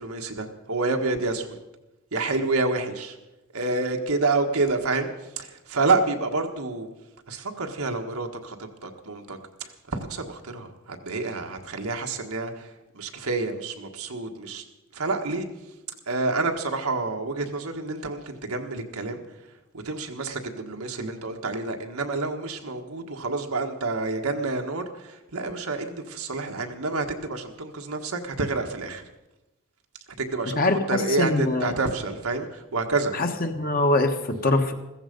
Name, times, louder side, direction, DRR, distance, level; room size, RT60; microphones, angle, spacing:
voice 1, 0.0-1.6 2.1-3.2 3.5-5.1 5.4-6.9 7.3-14.6 14.9-15.5 16.1-19.2 19.7-29.0 30.2-33.1, right 3 dB, 85° right, 4 dB, 1.6 m, -28 dB
voice 2, 30.6-31.7 33.2-34.7, left 2 dB, 40° left, 6 dB, 1.3 m, -23 dB
15.5 x 14.5 x 5.3 m, 1.0 s
head